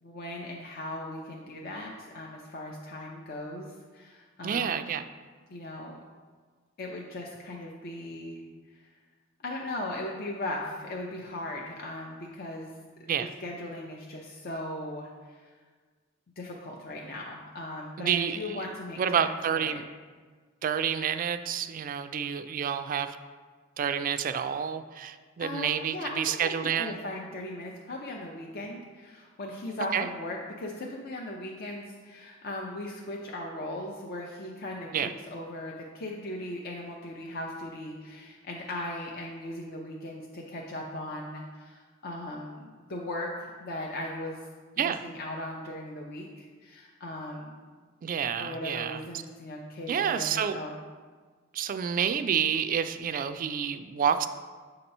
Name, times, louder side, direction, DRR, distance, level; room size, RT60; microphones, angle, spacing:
voice 1, 0.0-4.9 5.5-6.0 6.8-8.4 8.7-8.9 9.4-12.7 13.2-15.5 16.4-19.8 25.4-44.5 44.8-47.6 48.4-50.8, left 1 dB, 50° left, -1 dB, 0.6 m, -38 dB
voice 2, 4.4-5.0 13.1-13.3 18.0-18.6 19.0-19.8 20.6-23.2 23.8-27.0 29.9-30.1 34.9-35.1 44.8-45.0 48.0-49.0 49.9-50.6 51.5-54.3, right 8 dB, 45° right, 10 dB, 0.3 m, -29 dB
7.6 x 2.9 x 5.3 m, 1.5 s
head